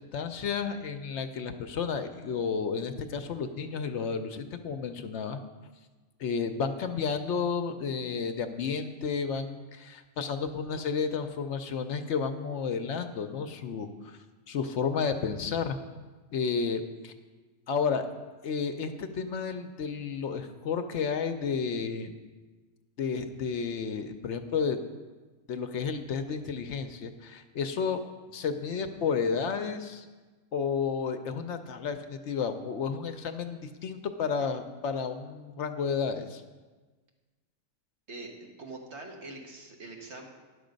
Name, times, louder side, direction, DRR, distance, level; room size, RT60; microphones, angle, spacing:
voice 1, 0.1-5.4 6.2-14.2 14.5-15.8 16.3-17.1 17.7-18.1 18.4-22.1 23.0-24.8 25.5-28.0 28.3-30.0 30.5-36.4, left 6 dB, 70° left, 8 dB, 0.9 m, -32 dB
voice 2, 38.6-40.3, right 2 dB, 60° right, 1 dB, 1.5 m, -43 dB
10.5 x 6.7 x 5.1 m, 1.3 s
omnidirectional pair, 1.3 m